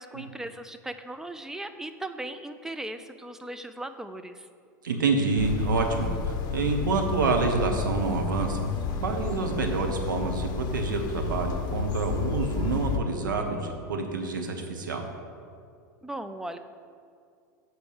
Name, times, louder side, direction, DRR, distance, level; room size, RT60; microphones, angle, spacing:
voice 1, 0.0-4.5 16.0-16.6, right 1 dB, 5° right, 9 dB, 0.4 m, -38 dB
voice 2, 4.8-8.7 9.0-15.0, right 4 dB, 80° right, 4 dB, 1.0 m, -27 dB
sound 1, 5.4-13.0, left 6 dB, 45° left, 0.8 m, -31 dB
6.8 x 4.6 x 6.6 m, 2.4 s
hypercardioid pair, 90°, 10 cm